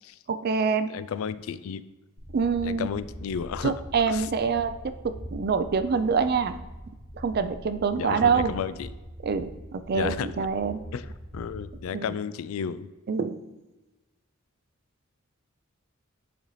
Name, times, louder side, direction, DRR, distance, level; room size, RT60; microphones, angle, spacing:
voice 1, 0.3-0.9 2.3-2.9 3.6-6.5 7.1-8.5 9.2-10.8 11.9-12.1 13.1-13.4, right 5 dB, 50° right, 11 dB, 0.4 m, -26 dB
voice 2, 0.9-1.8 2.6-3.7 4.1-4.5 7.9-8.9 9.9-10.3 10.9-11.0 11.3-12.9, left 7 dB, 75° left, 14 dB, 0.3 m, -32 dB
sound 1, 2.2-11.9, equal, 35° left, 2.5 m, -42 dB
10.5 x 4.1 x 3.1 m, 1.1 s
head